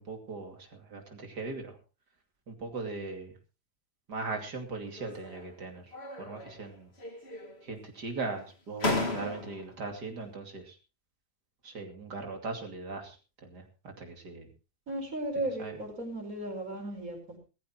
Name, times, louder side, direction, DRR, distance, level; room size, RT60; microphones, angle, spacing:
voice 1, 0.0-1.8 2.5-3.3 4.1-6.9 7.6-10.8 11.6-13.2 13.4-14.5 15.6-15.8, right 3 dB, 70° right, 4 dB, 3.2 m, -39 dB
sound 1, 4.9-5.5 5.9-6.7 7.0-7.7 8.4-8.5 8.8-9.8, left 3 dB, 35° left, 2.3 m, -35 dB
voice 2, 14.9-17.4, right 1 dB, 50° right, 2 dB, 5.4 m, -35 dB
19.0 x 14.5 x 3.0 m, 0.32 s
omnidirectional pair, 1.8 m